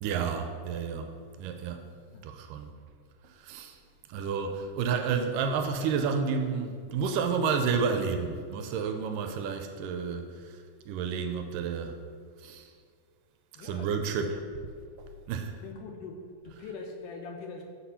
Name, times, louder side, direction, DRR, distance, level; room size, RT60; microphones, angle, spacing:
voice 1, 0.0-1.9 2.2-2.7 3.2-3.8 4.1-10.6 10.9-12.0 12.4-12.7 13.6-14.4 15.3-15.5, right 6 dB, 80° right, 6 dB, 2.1 m, -30 dB
voice 2, 13.6-14.1 15.6-16.1 16.4-17.6, left 4 dB, 80° left, 2 dB, 2.0 m, -42 dB
7.6 x 4.2 x 5.6 m, 2.1 s
omnidirectional pair, 4.0 m